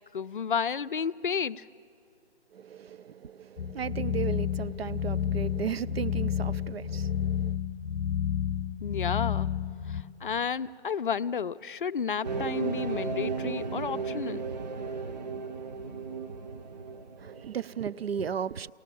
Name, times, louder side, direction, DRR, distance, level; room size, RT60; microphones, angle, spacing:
voice 1, 0.1-1.6 8.8-9.5 9.9-14.4, left 6 dB, 50° left, 0.4 m, -31 dB
voice 2, 2.5-7.6 17.2-18.7, right 8 dB, 60° right, 0.5 m, -35 dB
sound 1, 3.6-10.0, left 9 dB, 15° left, 0.8 m, -30 dB
sound 2, 12.2-17.8, right 5 dB, 40° right, 0.8 m, -35 dB
23.0 x 18.5 x 6.9 m
figure-of-eight pair, 150°, 34 cm